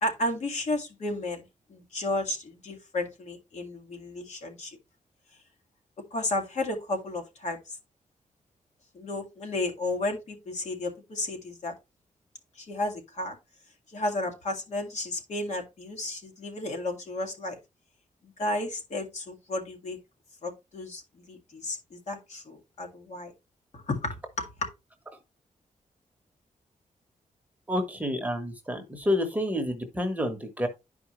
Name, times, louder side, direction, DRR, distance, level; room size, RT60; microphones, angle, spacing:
voice 1, 0.0-4.8 6.1-7.8 8.9-11.7 12.6-13.4 13.9-17.6 18.2-20.0 20.4-23.3 23.7-24.7, left 2 dB, 60° left, 2.1 m, -33 dB
voice 2, 27.7-30.7, left 1 dB, 10° right, 1.1 m, -29 dB
11.0 x 4.9 x 3.1 m
wide cardioid pair, 170°, 13 cm